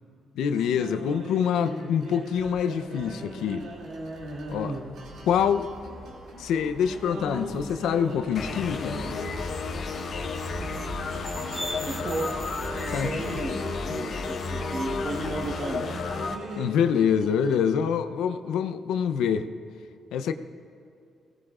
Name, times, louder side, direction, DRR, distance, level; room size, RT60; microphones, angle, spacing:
voice 1, 0.4-3.6 4.5-4.7 5.3-5.7 6.4-9.0 12.9-13.4 16.6-19.5 20.1-20.3, left 7 dB, 85° left, 9 dB, 0.6 m, -25 dB
sound 1, 0.5-17.6, right 1 dB, 75° right, 2.5 m, -39 dB
sound 2, 3.7-13.4, right 1 dB, 30° right, 1.8 m, -42 dB
sound 3, 8.3-16.3, left 4 dB, 60° left, 1.5 m, -33 dB
voice 2, 11.9-12.5 12.8-16.0, right 2 dB, 45° right, -1 dB, 1.3 m, -34 dB
21.0 x 17.5 x 2.5 m, 2.4 s
cardioid pair, 90°, 0 cm